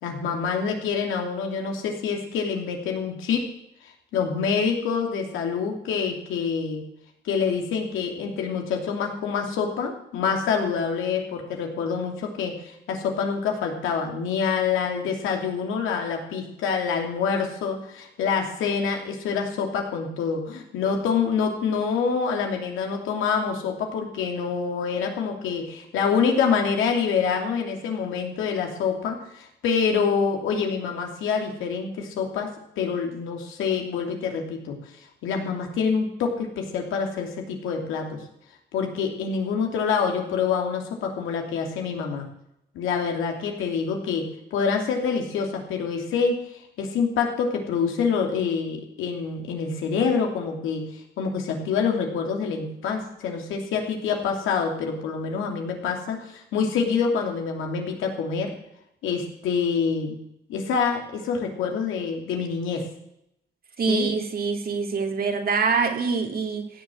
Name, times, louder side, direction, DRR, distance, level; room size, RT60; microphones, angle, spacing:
voice 1, 0.0-3.4 4.1-6.8 7.2-32.5 32.8-38.2 38.7-42.2 42.7-44.2 44.5-46.3 46.8-58.5 59.0-60.2 60.5-62.8 63.9-64.1, left 6 dB, 90° left, 2.9 m, -26 dB
voice 2, 63.8-66.7, right 5 dB, 50° right, 2.4 m, -25 dB
16.0 x 7.2 x 7.8 m
cardioid pair, 90°, 20 cm